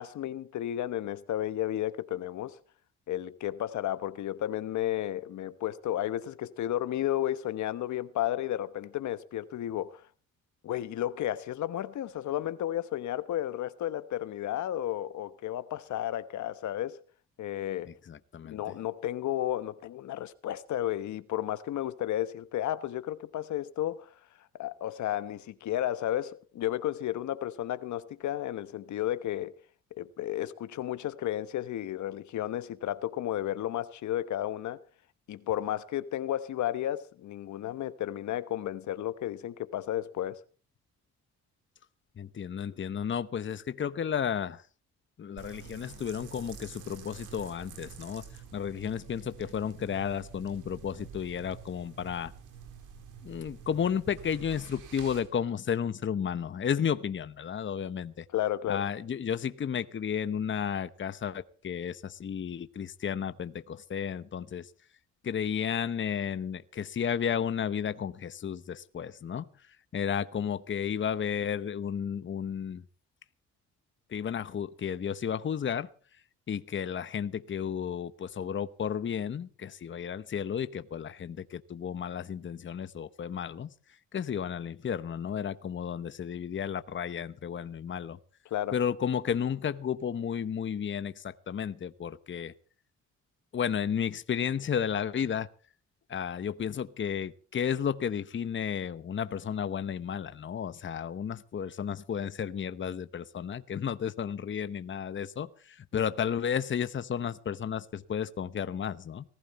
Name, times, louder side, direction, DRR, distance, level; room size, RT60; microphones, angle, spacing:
voice 1, 0.0-2.6 3.1-10.0 10.6-17.0 17.4-17.9 18.4-24.1 24.5-29.5 29.9-34.8 35.3-40.4 58.3-58.8 88.5-88.8, left 12 dB, 70° left, 1.1 m, -33 dB
voice 2, 18.1-18.6 42.2-44.6 45.2-48.2 48.5-52.3 53.2-58.2 58.7-64.7 65.2-69.5 69.9-72.8 74.1-75.9 76.5-83.7 84.1-88.2 88.7-92.5 93.5-95.5 96.1-109.2, left 8 dB, 40° left, 1.0 m, -33 dB
sound 1, 45.4-55.2, right 7 dB, 90° right, 4.4 m, -48 dB
19.0 x 15.5 x 4.2 m
cardioid pair, 90°, 30 cm